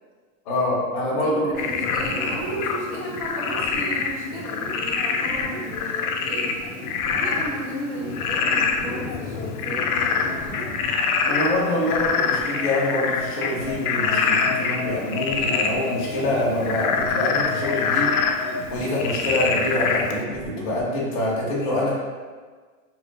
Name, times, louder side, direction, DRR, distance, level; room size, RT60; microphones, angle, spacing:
voice 1, 0.4-1.5 11.3-18.1 18.7-21.9, left 1 dB, 25° left, -5 dB, 0.6 m, -25 dB
voice 2, 1.2-6.6 7.1-10.6, right 1 dB, 25° right, -5 dB, 0.5 m, -34 dB
sound 1, 1.2-21.2, right 1 dB, 70° right, 0.5 m, -40 dB
Frog, 1.6-20.2, left 5 dB, 80° left, 0.5 m, -25 dB
2.9 x 2.2 x 3.8 m, 1.5 s
supercardioid pair, 175°, 43 cm